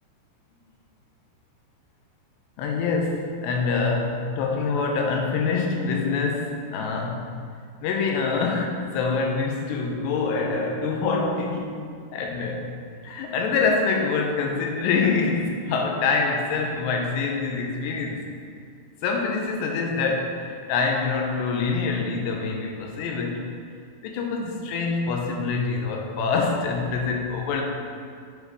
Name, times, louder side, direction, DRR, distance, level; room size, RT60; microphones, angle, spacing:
voice 1, 2.6-7.3 7.8-11.8 12.1-12.7 13.0-18.4 19.0-23.4 24.0-27.6, left 4 dB, 85° left, 2 dB, 2.9 m, -25 dB
8.0 x 6.5 x 4.8 m, 2.2 s
omnidirectional pair, 5.0 m